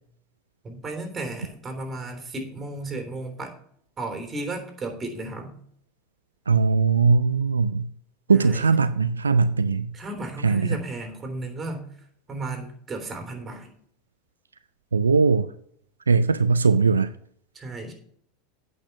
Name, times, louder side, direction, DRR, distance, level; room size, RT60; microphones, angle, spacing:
voice 1, 0.6-3.5 4.0-5.5 8.3-8.7 9.9-11.9 12.3-13.7 17.5-17.9, right 2 dB, 25° right, 3.3 m, -34 dB
voice 2, 6.5-7.9 8.3-9.9 10.4-10.8 14.9-15.5 16.1-17.1, right 4 dB, 85° right, 0.4 m, -20 dB
8.7 x 6.2 x 6.7 m
figure-of-eight pair, 85°, 0 cm